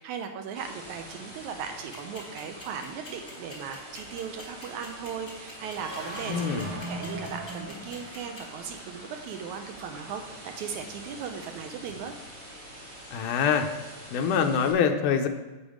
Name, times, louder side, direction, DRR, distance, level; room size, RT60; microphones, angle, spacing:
voice 1, 0.0-12.1, right 7 dB, 80° right, 5 dB, 1.9 m, -38 dB
sound 1, 0.6-14.7, equal, 25° right, 2.4 m, -45 dB
sound 2, 1.9-8.6, left 2 dB, 20° left, 2.7 m, -45 dB
sound 3, 5.7-8.7, right 1 dB, 55° right, 2.2 m, -38 dB
voice 2, 6.3-6.7 13.1-13.7 14.1-15.3, left 7 dB, 80° left, 6 dB, 2.1 m, -24 dB
8.1 x 7.0 x 5.0 m, 1.1 s
omnidirectional pair, 3.8 m